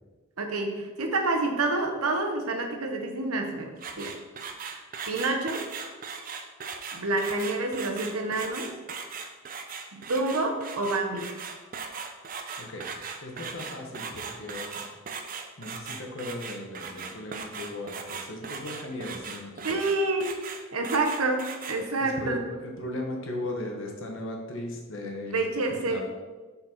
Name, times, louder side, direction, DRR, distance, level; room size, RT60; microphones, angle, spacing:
voice 1, 0.4-4.1 5.1-5.7 6.9-8.7 9.9-11.3 19.6-20.4 20.7-22.4 25.3-26.0, right 2 dB, 85° right, 3 dB, 1.0 m, -28 dB
sound 1, 3.8-21.8, right 5 dB, 40° right, 0.5 m, -38 dB
voice 2, 12.6-12.9 13.2-14.8 15.6-19.8 22.0-25.4 25.7-26.0, left 1 dB, 60° left, 2 dB, 1.1 m, -37 dB
6.7 x 4.2 x 4.3 m, 1.3 s
head